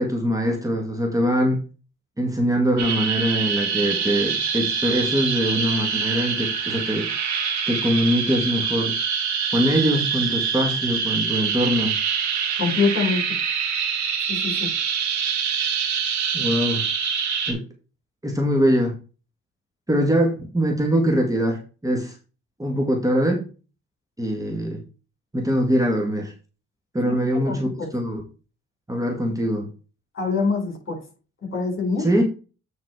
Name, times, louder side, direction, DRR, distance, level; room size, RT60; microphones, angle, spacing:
voice 1, 0.0-1.6 2.2-7.1 7.7-8.9 9.5-12.0 16.3-16.8 17.5-17.6 18.2-19.0 19.9-22.2 22.6-23.4 24.2-24.8 25.3-26.3 26.9-28.2 28.9-29.7 32.0-32.2, equal, 10° right, 1 dB, 1.9 m, -22 dB
sound 1, 2.8-17.5, right 6 dB, 70° right, 2.4 m, -25 dB
voice 2, 12.6-13.2 14.3-14.7 27.0-27.2 27.4-27.9 30.1-31.0 31.5-32.1, left 4 dB, 40° left, 1 dB, 4.9 m, -24 dB
9.3 x 4.2 x 4.7 m, 0.34 s
cardioid pair, 90°, 30 cm